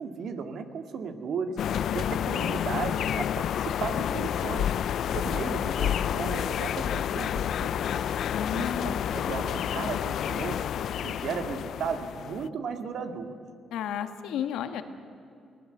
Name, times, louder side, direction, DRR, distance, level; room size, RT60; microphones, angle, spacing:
voice 1, 0.0-1.6 1.9-4.7 5.1-8.1 8.5-8.7 9.1-10.6 11.0-13.4, right 6 dB, 65° right, 7 dB, 1.9 m, -35 dB
sound 1, 1.6-12.5, left 9 dB, 70° left, 0.4 m, -29 dB
voice 2, 8.3-9.0 13.7-14.8, left 9 dB, 85° left, 8 dB, 1.4 m, -32 dB
22.5 x 17.5 x 8.0 m, 2.5 s
cardioid pair, 90°, 0 cm